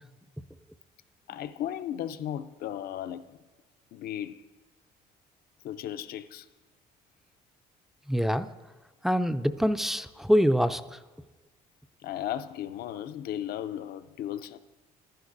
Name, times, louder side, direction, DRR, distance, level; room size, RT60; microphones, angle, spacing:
voice 1, 1.3-3.4 3.9-4.4 5.6-6.5 12.0-14.6, left 11 dB, 65° left, 0.5 m, -35 dB
voice 2, 8.1-8.5 9.0-10.8, equal, ahead, 0.3 m, -24 dB
14.5 x 11.5 x 2.6 m
cardioid pair, 110°, 17 cm